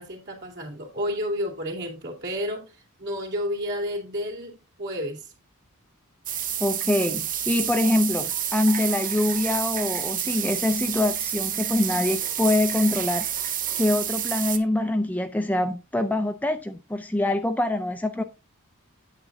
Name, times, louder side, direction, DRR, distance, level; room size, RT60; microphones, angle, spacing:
voice 1, 0.0-5.3, equal, 55° right, 2.5 m, -31 dB
sound 1, 6.3-14.6, right 9 dB, 40° right, 0.7 m, -29 dB
voice 2, 6.6-13.3 13.7-18.2, left 1 dB, 5° left, 0.5 m, -24 dB
8.9 x 7.6 x 2.6 m
head